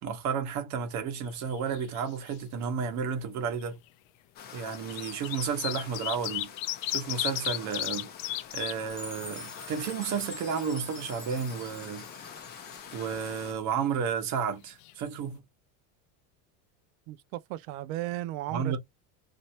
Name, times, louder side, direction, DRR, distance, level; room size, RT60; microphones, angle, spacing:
voice 1, 0.0-3.8 4.5-6.5 6.9-8.1 8.5-12.0 12.9-15.4 18.5-18.8, right 6 dB, 45° right, 1.0 m, -32 dB
sound 1, 1.3-2.0 2.3-2.4 3.5-3.6 4.5-8.7 9.2-9.3 9.6-10.6 14.5-14.6 14.8-14.9, left 16 dB, 70° left, 0.6 m, -34 dB
sound 2, 4.4-13.5, left 8 dB, 25° left, 0.5 m, -46 dB
Chime, 8.9-13.1, left 1 dB, ahead, 0.9 m, -46 dB
voice 2, 17.1-18.8, right 15 dB, 75° right, 0.6 m, -35 dB
3.2 x 2.7 x 2.8 m
cardioid pair, 170°, 40 cm